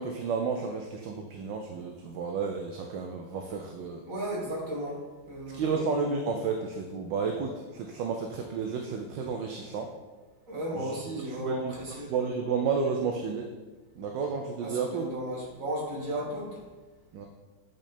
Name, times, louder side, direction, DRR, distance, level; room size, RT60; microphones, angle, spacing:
voice 1, 0.0-4.0 5.5-9.9 10.7-11.0 11.2-13.5 13.9-15.1 17.1-17.3, right 5 dB, 70° right, 3 dB, 1.3 m, -32 dB
voice 2, 4.1-5.6 10.5-12.1 14.6-16.6, right 1 dB, 40° right, -4 dB, 2.2 m, -35 dB
9.1 x 5.1 x 4.3 m, 1.3 s
omnidirectional pair, 2.3 m